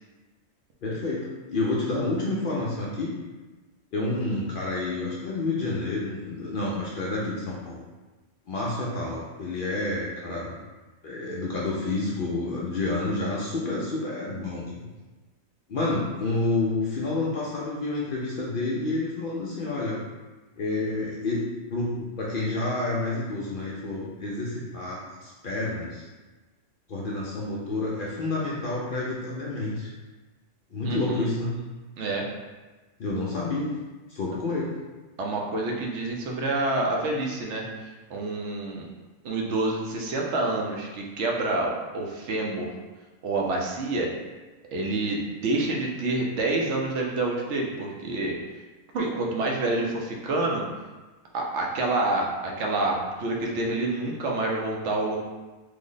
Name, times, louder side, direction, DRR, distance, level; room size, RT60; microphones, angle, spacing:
voice 1, 0.8-3.1 3.9-7.8 8.5-10.6 11.0-14.8 15.7-20.0 20.6-21.4 21.7-26.1 26.9-29.9 30.7-31.5 33.0-33.7 34.1-34.8, left 2 dB, 60° left, -5 dB, 0.6 m, -29 dB
voice 2, 30.8-31.3 32.0-32.3 35.2-38.9 39.2-42.7 43.2-44.1 44.7-48.4 48.9-50.6 51.3-55.2, right 2 dB, 70° right, -1 dB, 0.9 m, -28 dB
3.2 x 2.0 x 3.8 m, 1.2 s
omnidirectional pair, 1.3 m